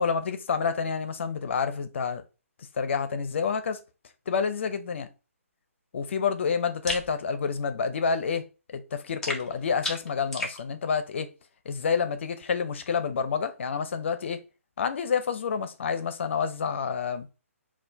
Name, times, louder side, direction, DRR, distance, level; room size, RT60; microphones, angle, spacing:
voice 1, 0.0-2.2 2.7-3.8 4.3-5.1 5.9-11.3 11.6-14.4 14.8-17.3, left 6 dB, 55° left, 0.7 m, -28 dB
sound 1, 6.9-7.1 9.2-10.6, left 2 dB, 5° left, 0.6 m, -33 dB
4.3 x 2.4 x 3.4 m
figure-of-eight pair, 145°, 8 cm